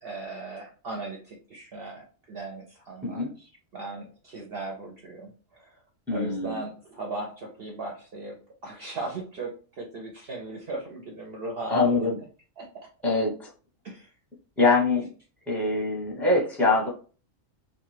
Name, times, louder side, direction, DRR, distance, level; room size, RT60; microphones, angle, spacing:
voice 1, 0.0-5.8 6.1-8.4 8.6-12.1 12.6-12.7 13.8-14.1, right 2 dB, 60° right, -1 dB, 0.7 m, -38 dB
voice 2, 6.1-6.6 11.7-12.2 13.0-13.5 14.6-15.1 15.5-16.9, left 3 dB, ahead, -3 dB, 0.7 m, -24 dB
2.6 x 2.3 x 3.2 m, 0.38 s
omnidirectional pair, 1.3 m